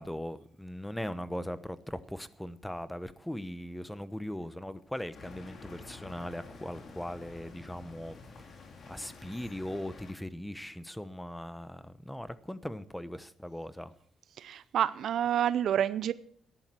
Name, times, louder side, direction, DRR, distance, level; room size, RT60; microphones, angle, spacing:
voice 1, 0.0-8.6 8.8-13.9, left 1 dB, 5° left, 1.0 m, -39 dB
sound 1, 5.1-10.1, left 4 dB, 55° left, 2.9 m, -49 dB
voice 2, 14.4-16.1, right 10 dB, 70° right, 0.6 m, -28 dB
13.5 x 10.5 x 6.2 m
cardioid pair, 90°, 0 cm